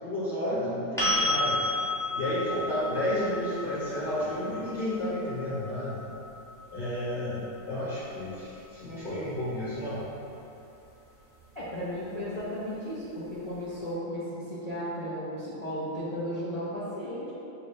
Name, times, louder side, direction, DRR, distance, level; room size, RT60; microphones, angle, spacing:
voice 1, 0.0-1.6 2.1-6.0 6.7-10.0, left 1 dB, 30° left, -13 dB, 1.1 m, -31 dB
sound 1, 1.0-8.8 11.6-11.7, left 1 dB, 5° left, 0.7 m, -33 dB
voice 2, 11.5-17.3, equal, 75° left, -11 dB, 0.3 m, -35 dB
6.0 x 2.3 x 3.1 m, 2.9 s
omnidirectional pair, 1.9 m